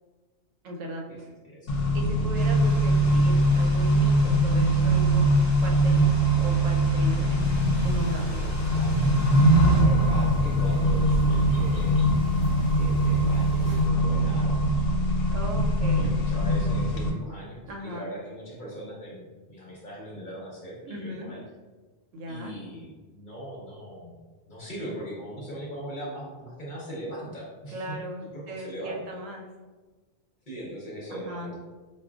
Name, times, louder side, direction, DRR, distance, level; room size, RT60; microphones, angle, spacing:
voice 1, 0.6-1.3 1.9-5.3 5.6-7.6 7.8-8.5 15.3-16.2 17.7-18.1 20.8-21.3 22.1-22.5 27.7-29.5 31.1-31.5, right 1 dB, 75° right, 1 dB, 0.9 m, -37 dB
Accelerating revving vroom, 1.7-17.1, right 1 dB, 75° left, 0.9 m, -22 dB
sound 1, 2.3-9.8, equal, 25° left, 0.4 m, -42 dB
sound 2, 7.4-13.9, equal, 30° right, 0.6 m, -36 dB
voice 2, 9.6-12.0 12.7-14.9 15.9-19.2 19.5-21.4 22.3-24.2 24.4-27.8 28.3-29.0 30.5-31.6, equal, 40° left, -5 dB, 0.9 m, -40 dB
4.7 x 2.4 x 2.4 m, 1.3 s
omnidirectional pair, 1.3 m